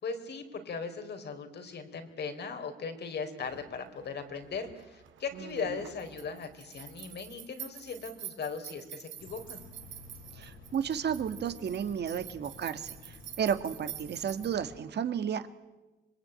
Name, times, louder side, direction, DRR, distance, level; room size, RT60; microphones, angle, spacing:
voice 1, 0.0-9.6, left 5 dB, 55° left, 7 dB, 3.9 m, -38 dB
sound 1, 3.4-14.5, right 11 dB, 75° right, 2.3 m, -48 dB
sound 2, 9.2-14.8, left 4 dB, 85° left, 7.3 m, -52 dB
voice 2, 10.3-15.5, right 8 dB, 60° right, 10 dB, 1.8 m, -33 dB
26.0 x 21.5 x 8.9 m, 1.1 s
cardioid pair, 90°, 20 cm